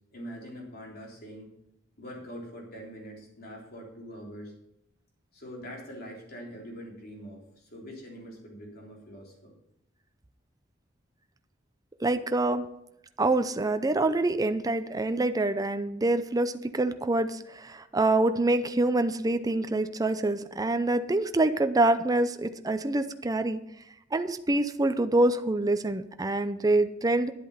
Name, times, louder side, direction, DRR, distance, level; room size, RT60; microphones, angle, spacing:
voice 1, 0.1-1.5 2.0-4.5 5.3-9.5, equal, 55° left, -1 dB, 3.5 m, -43 dB
voice 2, 12.0-12.7 13.2-23.6 24.1-27.3, right 2 dB, 20° right, 10 dB, 0.5 m, -26 dB
11.0 x 8.1 x 5.7 m, 0.82 s
head